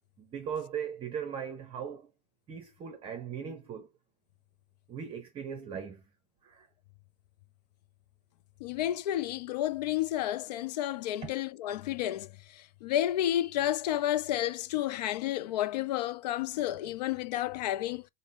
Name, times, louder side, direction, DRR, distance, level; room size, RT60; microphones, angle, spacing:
voice 1, 0.2-2.1 2.5-3.9 4.9-6.1 6.4-6.7 11.2-11.3, right 7 dB, 25° right, 0.7 m, -38 dB
voice 2, 8.6-18.1, left 13 dB, 85° left, 0.4 m, -31 dB
5.3 x 2.1 x 3.3 m
supercardioid pair, 140°, 21 cm